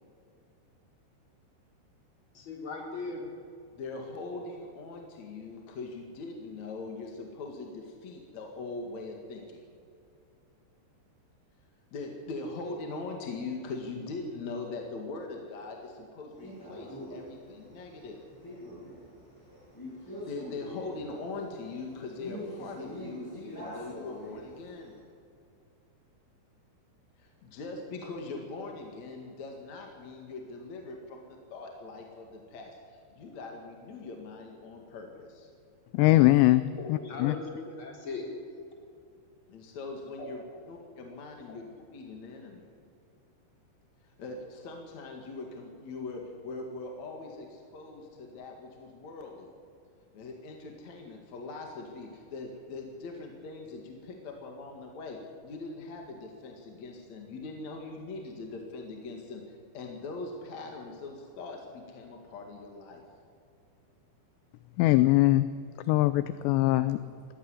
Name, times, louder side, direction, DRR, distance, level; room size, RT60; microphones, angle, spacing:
voice 1, 2.3-3.3 36.6-38.3 40.2-40.6 41.5-41.6, left 3 dB, 30° left, 0 dB, 4.0 m, -39 dB
voice 2, 3.7-9.6 11.9-18.2 20.0-25.0 27.2-35.5 39.5-42.6 44.0-49.5 50.1-63.0, left 3 dB, 50° left, 2 dB, 2.6 m, -41 dB
Male speech man speaking, 16.4-24.9, equal, 5° left, 6.9 m, -44 dB
voice 3, 35.9-36.6 36.9-37.4 64.8-65.5 65.9-67.0, left 17 dB, 80° left, 14 dB, 2.7 m, -22 dB
19.0 x 14.5 x 9.9 m, 2.4 s
omnidirectional pair, 5.4 m